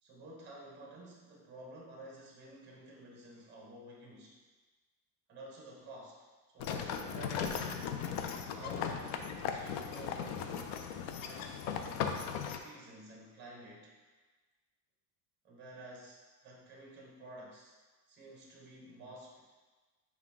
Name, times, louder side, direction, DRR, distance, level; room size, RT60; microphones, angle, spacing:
voice 1, 0.0-4.4 5.3-6.2 6.5-7.7 8.5-12.2 12.5-13.9 15.4-17.7 18.1-19.4, right 1 dB, 25° right, -2 dB, 0.8 m, -52 dB
sound 1, 6.6-12.6, left 7 dB, 75° left, 0.5 m, -37 dB
5.6 x 2.3 x 3.4 m, 1.3 s
cardioid pair, 175°, 44 cm